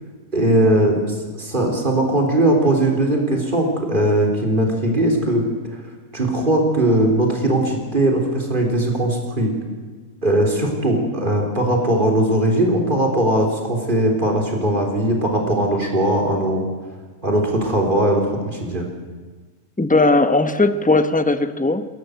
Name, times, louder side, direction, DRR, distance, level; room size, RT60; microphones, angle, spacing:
voice 1, 0.3-5.4 5.7-5.8 6.1-9.5 10.2-16.6 17.2-18.8, right 1 dB, 30° right, 1 dB, 4.1 m, -19 dB
voice 2, 19.8-21.9, left 2 dB, 5° left, 10 dB, 0.7 m, -17 dB
29.0 x 13.5 x 8.1 m, 1.4 s
omnidirectional pair, 1.6 m